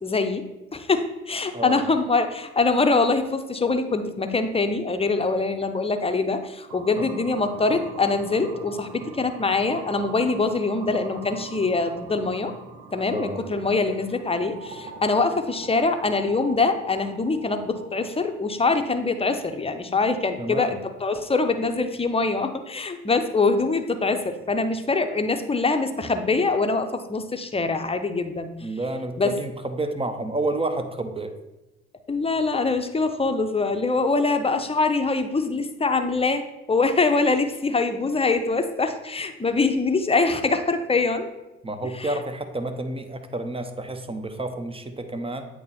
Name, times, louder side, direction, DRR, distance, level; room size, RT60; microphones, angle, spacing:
voice 1, 0.0-0.4 0.7-12.5 12.9-28.5 29.2-29.3 32.1-36.4 36.7-41.3 42.0-42.1, left 3 dB, 20° left, 7 dB, 0.8 m, -24 dB
sound 1, 6.7-20.7, right 4 dB, 75° right, 1.0 m, -43 dB
voice 2, 13.1-13.4 20.4-20.7 28.6-31.3 41.6-45.5, right 2 dB, 15° right, 8 dB, 0.8 m, -30 dB
8.4 x 3.0 x 4.3 m, 0.98 s
hypercardioid pair, 55°, 32 cm